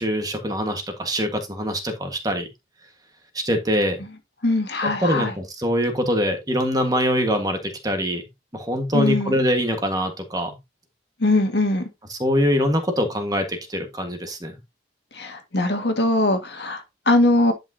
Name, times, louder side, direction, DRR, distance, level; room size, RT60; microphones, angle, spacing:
voice 1, 0.0-2.5 3.3-4.0 4.8-8.2 8.5-10.6 12.1-14.5, equal, 20° right, 1.5 m, -23 dB
voice 2, 4.4-5.3 8.9-9.3 11.2-11.9 15.2-17.5, left 2 dB, 65° left, 1.8 m, -21 dB
10.5 x 6.2 x 2.8 m
head